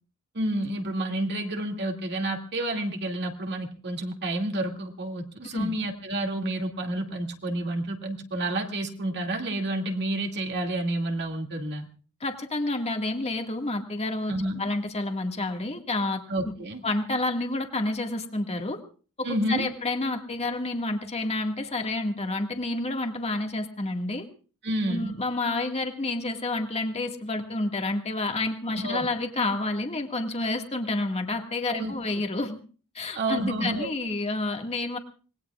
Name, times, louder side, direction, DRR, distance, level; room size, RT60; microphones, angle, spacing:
voice 1, 0.3-11.9 14.3-14.6 16.3-16.8 19.2-19.7 24.6-25.1 28.7-29.1 31.7-32.0 33.1-33.9, right 1 dB, 50° right, 2 dB, 2.3 m, -30 dB
voice 2, 5.4-5.7 12.2-14.3 14.6-16.2 16.8-18.8 19.2-24.3 24.9-32.6 32.9-35.0, left 2 dB, 30° left, 4 dB, 1.9 m, -29 dB
26.0 x 20.0 x 2.4 m, 0.39 s
head